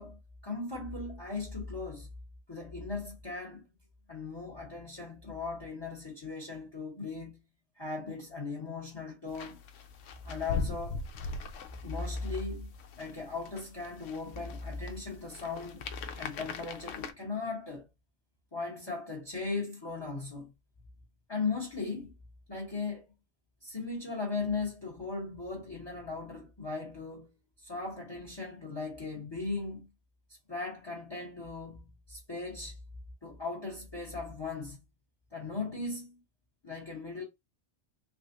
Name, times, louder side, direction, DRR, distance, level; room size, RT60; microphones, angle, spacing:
voice 1, 0.0-2.1 2.5-3.6 4.1-7.4 7.8-9.6 10.2-11.0 11.8-15.8 16.2-17.9 18.5-20.5 21.3-22.1 22.5-23.1 23.6-27.3 27.6-29.9 30.5-32.8 33.2-34.8 35.3-36.2 36.6-37.2, left 4 dB, 20° left, 0.9 m, -38 dB
sound 1, 9.3-17.1, left 4 dB, 75° left, 0.9 m, -41 dB
3.5 x 3.2 x 2.5 m
omnidirectional pair, 1.3 m